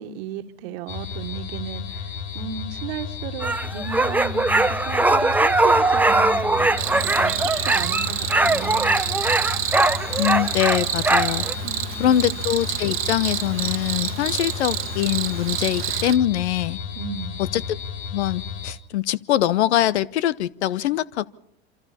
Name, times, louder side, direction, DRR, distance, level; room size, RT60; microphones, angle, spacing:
voice 1, 0.0-2.1 2.3-8.9 11.6-12.1 17.0-17.4, right 8 dB, 70° right, 1.8 m, -35 dB
sound 1, 0.9-18.7, left 6 dB, 60° left, 2.5 m, -33 dB
sound 2, 3.4-11.5, right 2 dB, 5° right, 0.7 m, -21 dB
Cricket, 6.8-16.2, right 13 dB, 40° right, 1.2 m, -28 dB
voice 2, 10.2-11.4 12.0-16.8 17.5-17.8 18.1-21.3, left 12 dB, 80° left, 0.9 m, -23 dB
27.5 x 25.5 x 4.3 m
hypercardioid pair, 95°, 33 cm